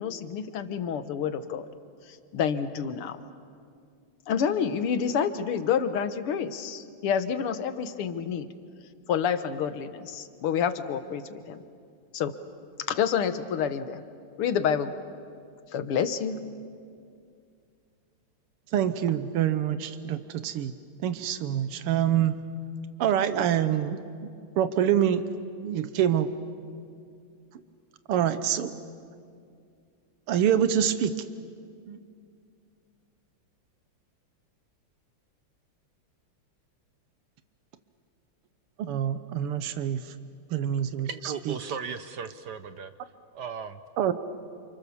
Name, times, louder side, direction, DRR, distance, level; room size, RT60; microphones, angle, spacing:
voice 1, 0.0-1.7 2.3-3.2 4.3-8.5 9.1-11.6 12.1-12.4 12.9-14.0 14.4-14.9 15.7-16.4, left 7 dB, 80° left, 11 dB, 2.1 m, -28 dB
voice 2, 18.7-20.7 21.0-22.3 23.0-24.0 24.6-25.2 25.6-26.3 28.1-28.7 30.3-31.2 31.9-32.0 38.8-40.0 40.5-41.1 41.5-41.6 44.0-44.1, right 10 dB, 90° right, 11 dB, 1.9 m, -25 dB
voice 3, 41.0-42.9 43.3-43.8, right 6 dB, 60° right, 11 dB, 1.2 m, -36 dB
29.5 x 28.0 x 7.1 m, 2.3 s
omnidirectional pair, 2.4 m